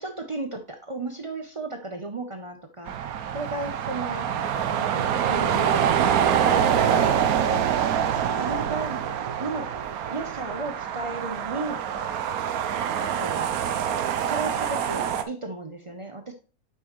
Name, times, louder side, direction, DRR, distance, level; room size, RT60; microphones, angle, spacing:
voice 1, 0.0-2.9 3.3-4.3 4.7-7.6 8.4-9.0 9.4-9.7 10.1-11.8 12.8-13.5 14.2-16.3, right 2 dB, 50° right, 5 dB, 0.3 m, -35 dB
sound 1, 2.9-15.2, right 8 dB, 75° right, 1.1 m, -25 dB
8.0 x 5.5 x 3.0 m, 0.37 s
omnidirectional pair, 1.6 m